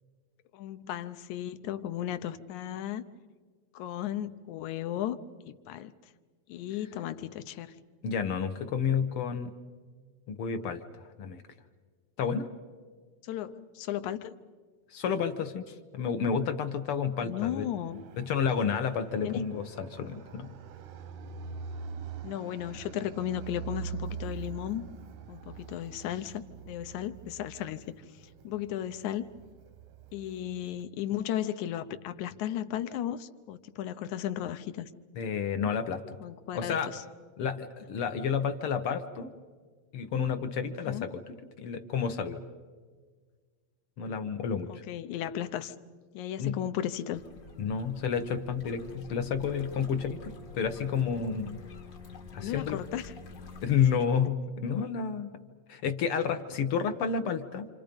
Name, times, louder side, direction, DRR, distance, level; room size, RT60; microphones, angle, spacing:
voice 1, 0.5-3.0 3.7-5.2 5.5-5.9 6.5-7.7 13.2-14.4 17.2-18.0 19.2-19.4 22.2-24.8 25.3-27.9 28.4-29.3 30.1-34.9 36.2-37.0 40.9-41.1 44.7-45.8 46.1-47.2 52.4-53.1, left 11 dB, 85° left, 11 dB, 2.2 m, -35 dB
voice 2, 8.0-9.5 10.3-11.4 12.2-12.5 14.9-17.7 18.2-20.5 35.1-36.2 36.5-36.9 37.4-39.3 39.9-41.2 41.6-42.4 44.0-44.8 46.4-46.6 47.6-50.2 50.5-51.6 52.3-52.8 53.6-55.3 55.7-57.7, left 6 dB, 65° left, 9 dB, 1.5 m, -30 dB
Fixed-wing aircraft airplane, 17.3-30.8, right 7 dB, 90° right, 2.6 m, -44 dB
sound 1, 47.1-53.8, left 3 dB, 45° left, 1.7 m, -47 dB
28.0 x 27.5 x 5.2 m, 1.6 s
omnidirectional pair, 3.3 m